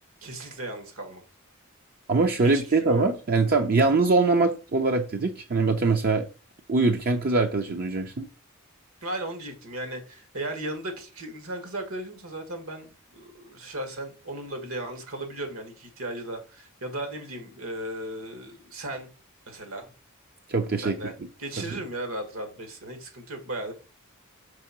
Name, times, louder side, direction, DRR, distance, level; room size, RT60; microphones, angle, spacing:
voice 1, 0.2-1.2 2.4-3.0 9.0-19.1 19.5-19.9 20.8-21.1 21.4-23.7, right 1 dB, 75° right, 1.9 m, -36 dB
voice 2, 2.1-6.3 6.7-8.3 20.5-21.1 21.6-21.8, right 3 dB, 45° right, 0.6 m, -23 dB
6.2 x 3.6 x 5.9 m
head